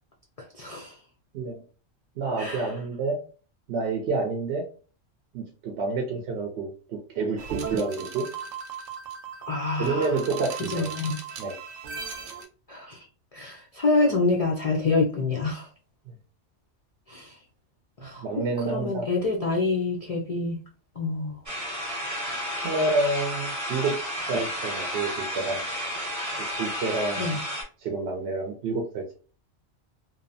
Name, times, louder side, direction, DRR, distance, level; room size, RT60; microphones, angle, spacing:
voice 1, 0.5-0.9 2.4-2.7 9.5-10.2 10.7-11.2 12.7-13.0 13.3-15.7 17.1-17.4 18.0-20.6 21.0-21.4 27.2-27.4, left 3 dB, 75° left, 0 dB, 0.3 m, -27 dB
voice 2, 2.2-3.2 3.7-4.6 5.3-8.3 9.8-10.9 11.4-11.5 18.2-19.1 22.6-24.0 24.3-25.6 26.6-27.4 27.8-29.2, right 3 dB, 65° right, 2 dB, 0.7 m, -28 dB
sound 1, 7.4-12.5, right 6 dB, 85° right, 1.0 m, -37 dB
sound 2, 21.5-27.6, equal, 15° right, 0.8 m, -32 dB
2.8 x 2.0 x 2.5 m, 0.37 s
omnidirectional pair, 1.3 m